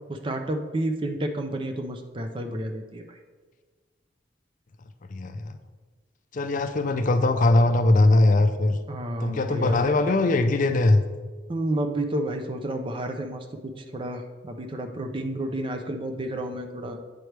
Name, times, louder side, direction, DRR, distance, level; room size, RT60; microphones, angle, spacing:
voice 1, 0.1-3.2 8.9-9.9 11.5-17.0, right 1 dB, 30° right, 5 dB, 0.5 m, -31 dB
voice 2, 5.1-5.6 6.3-8.8 9.2-11.0, left 2 dB, 45° left, 9 dB, 0.4 m, -21 dB
9.0 x 4.6 x 3.3 m, 1.4 s
head